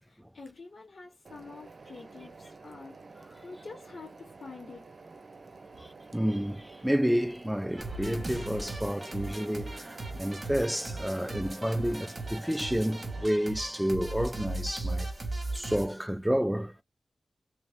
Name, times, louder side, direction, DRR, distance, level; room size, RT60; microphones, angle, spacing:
voice 1, 0.0-3.0 3.4-4.8, left 4 dB, 70° left, 1.6 m, -47 dB
sound 1, 1.3-13.3, right 3 dB, 60° right, 0.7 m, -50 dB
voice 2, 5.8-15.1 15.5-16.7, equal, 5° right, 0.4 m, -30 dB
sound 2, 7.8-15.9, right 2 dB, 35° right, 1.2 m, -37 dB
3.1 x 2.8 x 3.4 m
wide cardioid pair, 80°, 0 cm